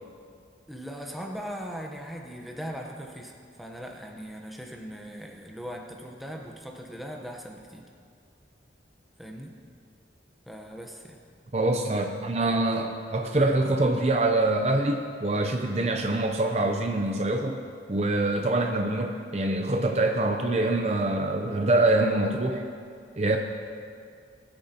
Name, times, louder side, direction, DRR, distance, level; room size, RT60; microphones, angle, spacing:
voice 1, 0.7-7.8 9.2-9.6 10.5-11.2, equal, ahead, 1 dB, 0.9 m, -39 dB
voice 2, 11.5-17.6 17.9-22.6 23.2-23.4, right 2 dB, 35° right, 3 dB, 0.6 m, -25 dB
20.0 x 8.9 x 2.9 m, 2.2 s
head